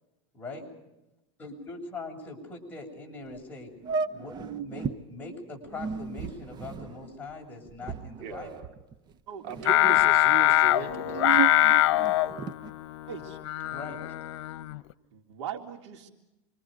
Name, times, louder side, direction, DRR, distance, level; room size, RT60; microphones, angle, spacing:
voice 1, 0.3-0.7 1.4-3.7 4.1-8.5 9.5-9.6 13.7-14.1, left 3 dB, 10° left, -2 dB, 7.6 m, -41 dB
sound 1, 3.3-3.4 3.8-5.0 5.6-9.1 9.4-10.1 10.7-12.7, right 6 dB, 30° right, 1.0 m, -34 dB
voice 2, 8.2-8.7 9.4-11.5, right 7 dB, 65° right, 3 dB, 4.5 m, -38 dB
voice 3, 9.3-10.0 13.1-13.4 15.1-16.1, right 7 dB, 85° right, 3 dB, 3.4 m, -40 dB
Singing, 9.7-14.9, left 16 dB, 80° left, 1.0 m, -23 dB
28.5 x 25.5 x 5.3 m, 0.95 s
supercardioid pair, 130°, 15 cm